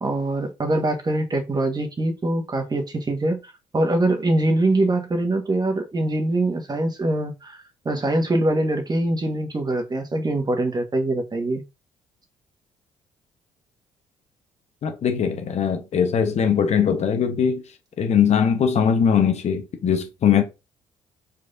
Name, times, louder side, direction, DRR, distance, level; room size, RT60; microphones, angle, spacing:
voice 1, 0.0-11.6, right 2 dB, 30° right, 1.5 m, -23 dB
voice 2, 14.8-17.6 18.0-20.4, left 7 dB, 55° left, 1.0 m, -20 dB
4.8 x 4.0 x 2.6 m
hypercardioid pair, 50°, 14 cm